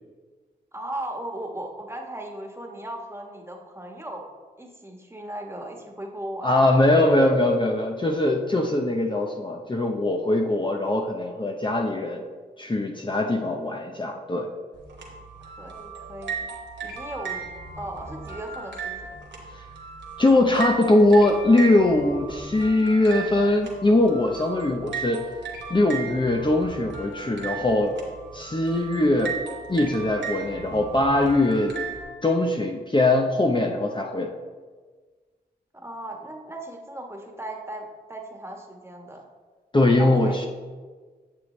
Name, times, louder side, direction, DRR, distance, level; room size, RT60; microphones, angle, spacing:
voice 1, 0.7-4.3 4.6-6.7 15.6-16.5 16.8-17.4 17.8-18.9 35.7-39.2 40.0-40.5, right 1 dB, 15° right, 1 dB, 1.6 m, -37 dB
voice 2, 6.4-12.2 12.6-14.5 20.2-25.3 25.7-28.0 28.3-29.4 29.7-31.7 32.2-34.3 39.7-40.5, left 2 dB, 25° left, 2 dB, 0.8 m, -21 dB
sound 1, 14.7-32.0, right 5 dB, 85° right, 1.3 m, -36 dB
9.1 x 6.8 x 3.3 m, 1.4 s
cardioid pair, 45°, 18 cm